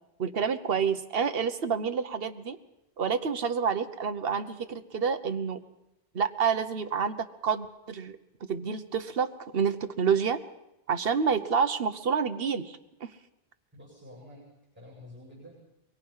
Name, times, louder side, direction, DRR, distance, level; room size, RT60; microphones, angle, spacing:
voice 1, 0.2-2.6 3.0-5.6 6.1-8.2 8.5-10.4 10.9-13.1, right 6 dB, 60° right, 8 dB, 1.3 m, -28 dB
voice 2, 13.7-15.5, left 1 dB, 10° right, -4 dB, 7.0 m, -49 dB
23.5 x 23.0 x 5.7 m, 0.90 s
omnidirectional pair, 1.1 m